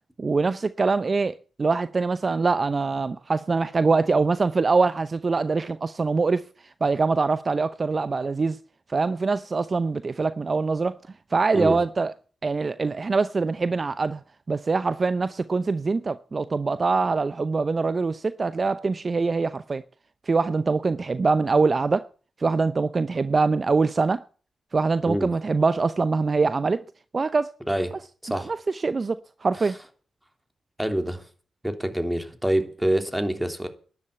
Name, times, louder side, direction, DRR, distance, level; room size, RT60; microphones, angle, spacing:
voice 1, 0.2-6.5 6.8-8.6 8.9-11.0 11.3-12.1 12.4-14.2 14.5-19.8 20.3-22.1 22.4-24.2 24.7-26.8 27.1-27.5 28.3-29.8, right 4 dB, 45° right, 0.6 m, -23 dB
voice 2, 30.8-31.2 31.6-33.7, right 1 dB, 10° right, 3.3 m, -26 dB
12.0 x 10.5 x 8.2 m
supercardioid pair, 40°, 0 cm